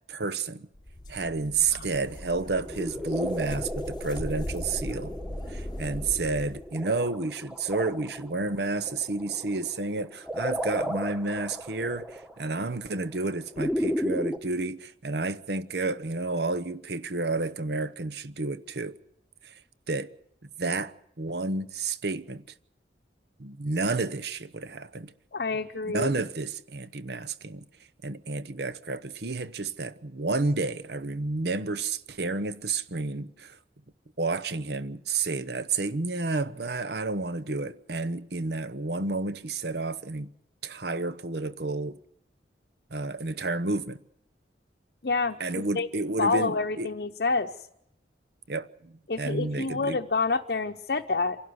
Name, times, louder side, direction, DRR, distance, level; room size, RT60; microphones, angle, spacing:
voice 1, 0.1-0.7 1.1-5.1 5.5-19.0 19.4-19.6 19.9-20.1 20.4-22.4 23.4-25.1 25.8-27.7 28.0-33.6 34.2-40.3 40.6-42.0 42.9-44.0 45.4-46.9 48.5-50.0, right 3 dB, 60° right, 0.9 m, -31 dB
sound 1, 0.7-6.7, left 1 dB, 25° left, 0.9 m, -38 dB
sound 2, 2.4-14.4, equal, 5° right, 1.2 m, -34 dB
voice 2, 25.3-26.1 45.0-45.9 46.2-47.5 49.1-51.4, left 3 dB, 60° left, 0.8 m, -28 dB
27.0 x 11.5 x 9.6 m
head